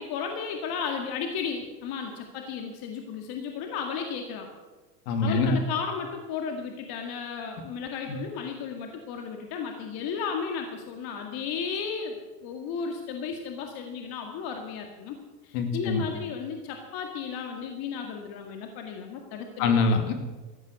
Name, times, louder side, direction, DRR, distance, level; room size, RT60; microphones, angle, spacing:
voice 1, 0.0-4.5 5.2-15.2 15.4-19.7, left 6 dB, 45° left, 4 dB, 2.1 m, -34 dB
voice 2, 5.1-5.6 15.5-16.0 19.6-20.1, left 4 dB, 65° left, 6 dB, 2.7 m, -24 dB
14.0 x 9.8 x 8.1 m, 1.2 s
hypercardioid pair, 100°, 49 cm